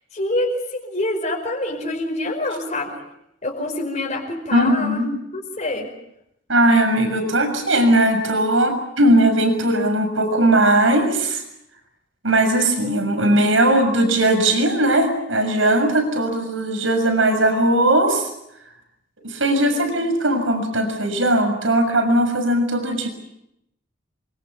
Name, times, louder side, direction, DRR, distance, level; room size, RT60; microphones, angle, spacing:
voice 1, 0.1-3.0 3.4-5.0 5.3-5.9 19.7-20.0, left 1 dB, 40° left, 1 dB, 5.0 m, -26 dB
voice 2, 4.5-5.1 6.5-11.4 12.2-18.3 19.2-23.1, right 1 dB, 85° right, 7 dB, 6.8 m, -18 dB
27.0 x 24.5 x 7.2 m, 0.82 s
head